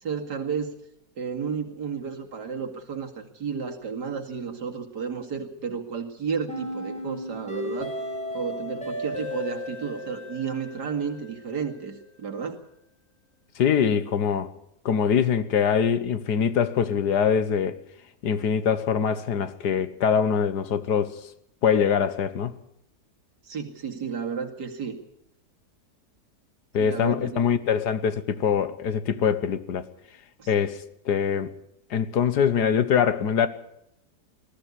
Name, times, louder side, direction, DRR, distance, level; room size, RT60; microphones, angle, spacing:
voice 1, 0.0-0.8 1.2-8.0 8.3-12.6 23.4-25.0 26.8-27.5 30.4-30.5, right 6 dB, 80° right, 2.8 m, -32 dB
sound 1, 6.5-11.5, left 1 dB, 5° left, 5.4 m, -34 dB
voice 2, 13.6-14.5 14.8-17.8 18.2-21.1 21.6-22.6 26.7-29.8 30.5-30.8 31.0-31.5 31.9-33.5, left 7 dB, 75° left, 1.7 m, -23 dB
20.0 x 14.0 x 9.8 m
omnidirectional pair, 1.8 m